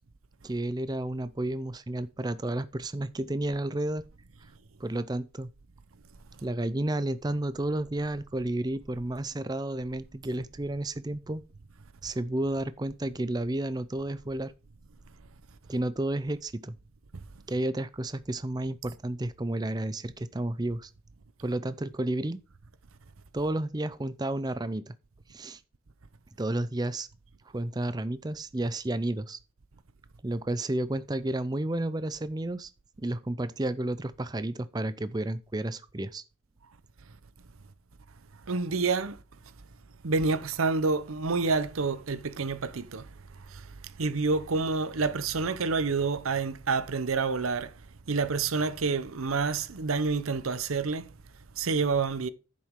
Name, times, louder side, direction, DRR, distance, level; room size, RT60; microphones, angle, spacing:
voice 1, 0.4-4.0 4.8-5.5 6.4-11.4 12.0-14.5 15.7-16.8 17.5-20.9 21.4-22.4 23.3-24.9 25.3-25.6 26.4-27.1 27.5-29.4 30.2-32.7 33.0-36.2, right 1 dB, 20° right, 0.5 m, -31 dB
voice 2, 38.5-39.2 40.0-43.0 44.0-47.7 48.1-51.0 51.6-52.3, right 4 dB, 85° right, 0.8 m, -28 dB
9.9 x 7.6 x 3.7 m
head